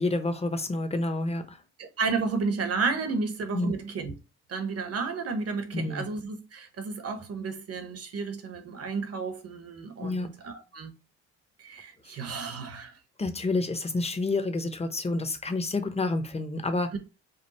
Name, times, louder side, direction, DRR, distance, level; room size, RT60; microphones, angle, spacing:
voice 1, 0.0-1.6 3.5-3.7 5.7-6.1 10.0-10.3 12.1-12.2 13.2-16.9, left 2 dB, 20° left, 0.9 m, -29 dB
voice 2, 1.8-4.1 4.5-10.9 11.6-12.9 16.9-17.0, right 4 dB, 55° right, 1.2 m, -32 dB
5.2 x 2.3 x 4.2 m
cardioid pair, 90°, 30 cm